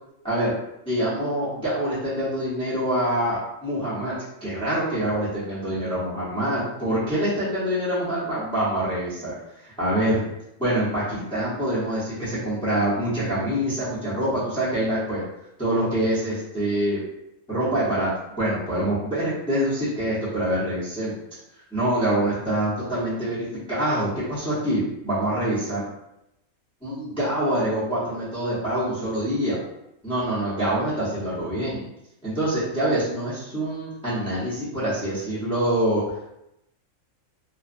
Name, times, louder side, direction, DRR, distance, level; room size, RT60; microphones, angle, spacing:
voice 1, 0.9-4.1 4.4-9.3 9.6-10.2 10.6-15.2 15.6-17.0 17.5-18.1 18.4-21.2 21.7-25.9 26.8-29.6 30.0-31.8 32.2-36.2, right 1 dB, 5° left, -12 dB, 0.7 m, -25 dB
2.6 x 2.3 x 2.5 m, 0.85 s
omnidirectional pair, 1.5 m